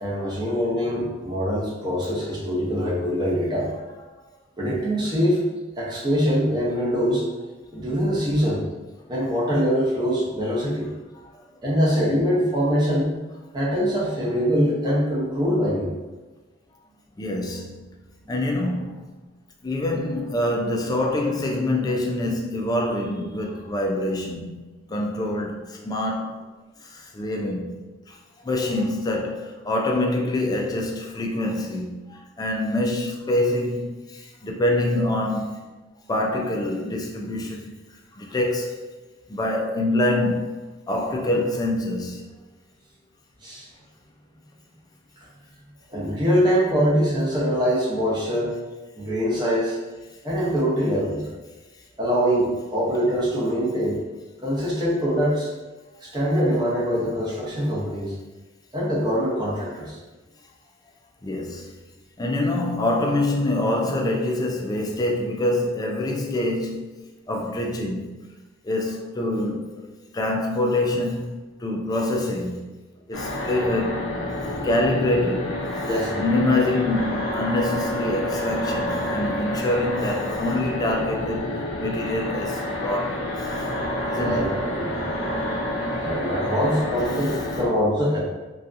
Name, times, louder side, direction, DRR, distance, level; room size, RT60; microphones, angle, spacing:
voice 1, 0.0-3.7 4.6-5.4 5.8-7.3 7.7-8.6 9.1-10.9 11.6-13.2 13.5-15.9 43.4-43.7 45.9-48.5 49.0-49.8 50.2-51.2 52.0-54.0 54.4-55.5 56.0-58.1 58.7-60.0 75.9-76.2 84.1-84.5 84.8-85.0 86.0-88.2, equal, 20° right, 0.7 m, -23 dB
voice 2, 17.2-17.9 18.3-19.2 19.6-26.4 26.9-27.7 28.4-35.6 36.1-37.7 38.2-38.8 39.3-40.6 40.9-42.3 61.2-61.7 62.2-66.9 67.3-68.1 68.6-69.9 70.1-72.6 73.1-74.1 74.6-75.6 76.1-81.5 81.8-83.5 84.1-84.5, left 1 dB, 20° left, 0.3 m, -25 dB
sound 1, 73.1-87.7, left 1 dB, 85° left, 0.5 m, -28 dB
2.6 x 2.3 x 2.4 m
head